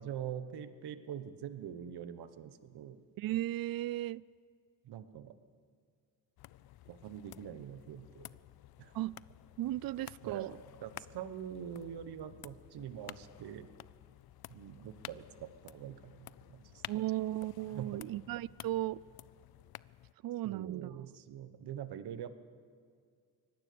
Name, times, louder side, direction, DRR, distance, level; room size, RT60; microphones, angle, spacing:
voice 1, 0.0-3.0 4.8-5.3 6.9-8.3 8.8-8.9 10.2-10.5 10.8-13.7 14.5-16.8 17.7-18.0 20.4-22.4, right 9 dB, 85° right, 1.2 m, -44 dB
voice 2, 3.2-4.2 8.9-9.2 9.6-10.5 16.9-19.0 20.2-21.1, right 15 dB, 65° right, 0.5 m, -36 dB
sound 1, 6.4-20.1, left 15 dB, 70° left, 0.5 m, -53 dB
24.0 x 18.5 x 6.9 m
cardioid pair, 95°, 39 cm